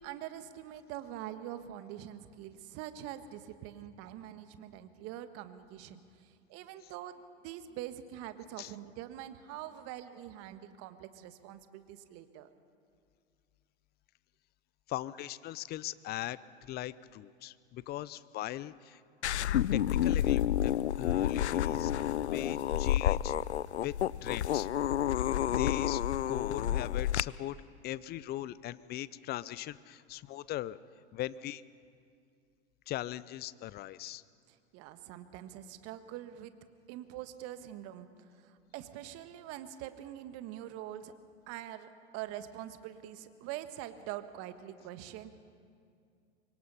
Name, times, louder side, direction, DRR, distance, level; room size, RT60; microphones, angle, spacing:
voice 1, 0.0-7.1 7.4-12.5 26.5-26.8 34.5-36.5 36.9-41.1 41.5-45.3, right 12 dB, 45° right, 10 dB, 1.5 m, -44 dB
voice 2, 14.9-16.4 16.7-19.0 19.7-23.3 23.8-24.0 24.2-24.7 25.5-26.0 26.3-27.6 27.8-30.8 31.1-31.6 32.9-34.2, left 14 dB, 30° left, 19 dB, 0.6 m, -39 dB
sound 1, 19.2-27.2, left 11 dB, 90° left, 0.5 m, -30 dB
25.0 x 23.0 x 5.6 m, 2.3 s
hypercardioid pair, 100°, 33 cm